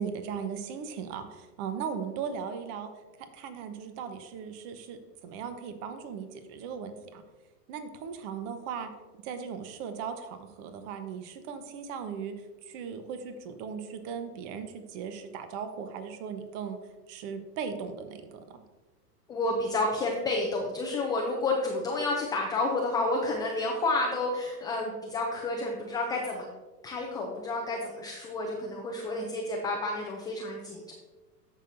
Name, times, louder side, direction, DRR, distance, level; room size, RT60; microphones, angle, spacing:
voice 1, 0.0-2.9 3.3-7.2 7.7-8.9 9.2-16.8 17.1-18.6, right 6 dB, 45° right, 8 dB, 1.1 m, -38 dB
voice 2, 19.3-26.5 26.8-30.9, left 2 dB, 10° left, -1 dB, 0.3 m, -30 dB
14.0 x 5.9 x 2.7 m, 1.2 s
hypercardioid pair, 115°, 49 cm